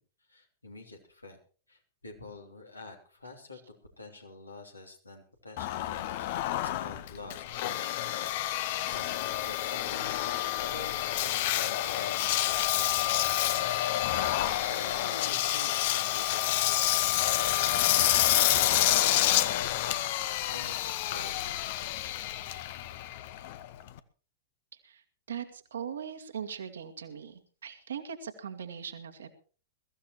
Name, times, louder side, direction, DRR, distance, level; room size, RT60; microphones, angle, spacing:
voice 1, 0.3-1.4 1.7-3.6 4.0-6.3 6.6-14.3 14.7-21.6, left 3 dB, 80° left, 3 dB, 2.9 m, -48 dB
Engine, 5.6-24.0, left 14 dB, 50° left, 0.9 m, -28 dB
voice 2, 24.8-29.3, right 8 dB, 65° right, 7 dB, 1.9 m, -40 dB
22.0 x 14.5 x 3.1 m, 0.39 s
figure-of-eight pair, 100°, 0 cm